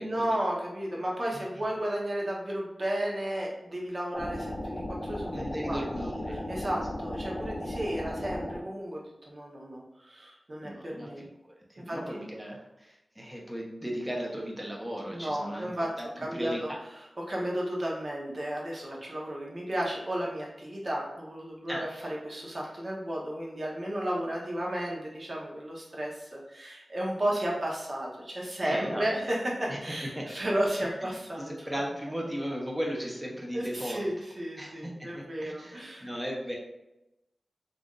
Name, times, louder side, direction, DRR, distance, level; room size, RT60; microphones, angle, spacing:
voice 1, 0.0-5.8 6.3-11.2 11.8-12.0 15.1-16.7 17.2-31.7 33.5-36.1, right 1 dB, 50° right, -3 dB, 0.9 m, -33 dB
sound 1, 4.1-8.6, left 1 dB, 40° left, 0.6 m, -36 dB
voice 2, 5.3-6.7 10.6-15.7 16.0-16.8 21.7-21.9 28.6-29.2 29.7-29.8 30.1-30.3 31.4-34.1 34.5-36.6, equal, 15° right, -1 dB, 0.8 m, -36 dB
3.3 x 2.6 x 2.4 m, 0.93 s
wide cardioid pair, 60°, 0 cm